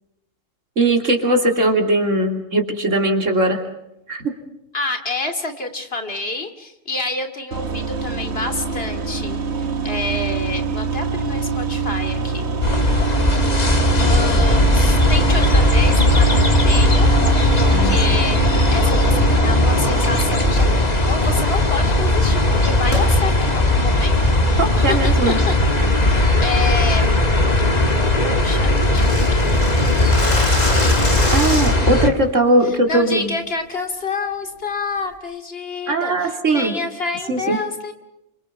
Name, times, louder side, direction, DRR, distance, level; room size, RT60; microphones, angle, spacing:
voice 1, 0.8-3.6 4.1-4.3 17.7-18.0 24.6-25.4 31.3-33.3 35.9-36.8 37.3-37.6, right 1 dB, 70° right, 3 dB, 3.3 m, -19 dB
voice 2, 4.7-9.4 9.8-12.5 14.0-17.1 17.6-18.4 18.7-25.5 25.9-27.1 28.2-29.4 32.9-37.9, left 3 dB, 50° left, 6 dB, 2.7 m, -28 dB
sound 1, 7.5-20.5, right 5 dB, 55° right, 1.6 m, -25 dB
sound 2, 12.6-32.1, left 1 dB, 30° left, 1.9 m, -17 dB
sound 3, 20.5-20.8 22.9-23.1 23.6-23.7 24.2-24.5 24.9-25.2 25.5-25.8 26.2-26.3 26.7-26.9 27.3-27.4 27.7-27.8 28.0-28.1 28.3-32.0, left 1 dB, 75° left, 6.0 m, -26 dB
27.5 x 25.0 x 5.9 m, 0.86 s
omnidirectional pair, 1.3 m